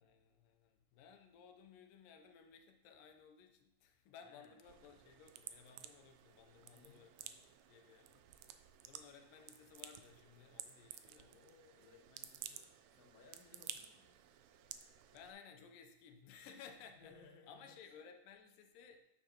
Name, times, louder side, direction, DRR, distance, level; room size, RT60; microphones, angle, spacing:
voice 1, 0.0-11.3 15.1-17.2 17.5-19.0, left 6 dB, 90° left, 5 dB, 2.5 m, -59 dB
voice 2, 4.2-4.6 6.7-7.0 11.2-14.5 17.0-18.0, left 4 dB, 65° left, 1 dB, 1.8 m, -64 dB
sound 1, 4.6-15.3, right 11 dB, 85° right, 1.6 m, -54 dB
9.3 x 7.6 x 2.9 m, 0.85 s
omnidirectional pair, 3.8 m